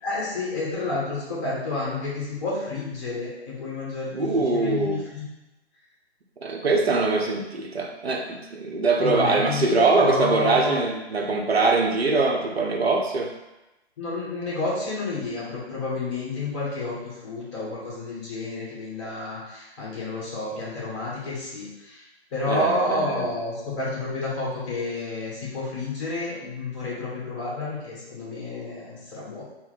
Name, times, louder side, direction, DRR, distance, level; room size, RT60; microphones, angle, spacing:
voice 1, 0.0-5.2 9.0-10.8 14.0-29.4, left 2 dB, 25° left, -6 dB, 1.4 m, -30 dB
voice 2, 4.1-5.0 6.4-13.3 22.5-23.3, right 3 dB, 70° right, 1 dB, 0.8 m, -23 dB
4.5 x 2.1 x 4.0 m, 0.99 s
figure-of-eight pair, 135°, 33 cm